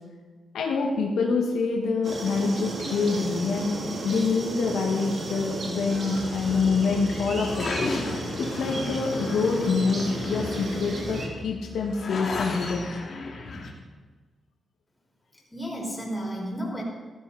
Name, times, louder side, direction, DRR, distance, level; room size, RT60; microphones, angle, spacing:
voice 1, 0.5-7.7 8.4-12.9, left 4 dB, 85° left, 0 dB, 1.9 m, -26 dB
sound 1, 2.0-11.3, right 2 dB, 60° right, 3.4 m, -34 dB
sound 2, 5.9-13.7, left 3 dB, 55° left, 2.7 m, -34 dB
voice 2, 15.3-16.8, equal, 10° left, -2 dB, 5.2 m, -33 dB
14.0 x 14.0 x 4.3 m, 1.4 s
cardioid pair, 65°, 0 cm